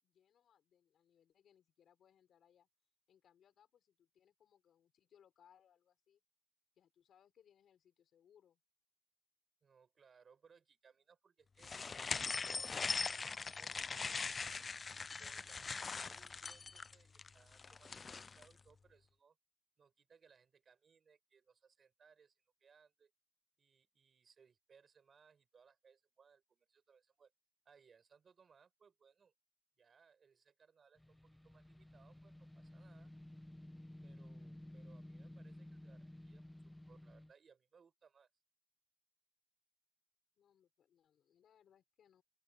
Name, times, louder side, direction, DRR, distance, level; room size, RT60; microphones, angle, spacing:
voice 1, 0.0-2.7 3.1-6.2 6.7-8.6 40.3-42.2, left 9 dB, 85° left, 6.5 m, -70 dB
voice 2, 9.6-14.1 14.9-19.4 19.8-23.1 23.6-27.3 27.6-29.3 29.8-33.1 34.0-38.3, right 6 dB, 55° right, 6.1 m, -68 dB
sound 1, 11.6-18.5, left 4 dB, 40° left, 0.4 m, -41 dB
sound 2, 31.0-37.3, left 1 dB, 10° left, 1.2 m, -54 dB
open air
cardioid pair, 95°, 0 cm